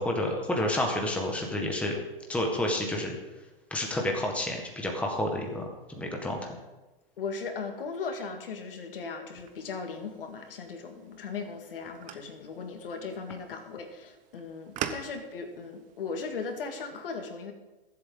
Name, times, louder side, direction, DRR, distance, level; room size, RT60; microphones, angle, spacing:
voice 1, 0.0-2.0 2.3-3.2 3.7-6.6, left 1 dB, 5° left, 1 dB, 1.7 m, -30 dB
voice 2, 7.2-17.5, left 4 dB, 70° left, 5 dB, 2.3 m, -38 dB
sound 1, 9.3-16.9, right 10 dB, 25° right, 1.0 m, -44 dB
21.5 x 7.9 x 4.0 m, 1.1 s
hypercardioid pair, 125°, 29 cm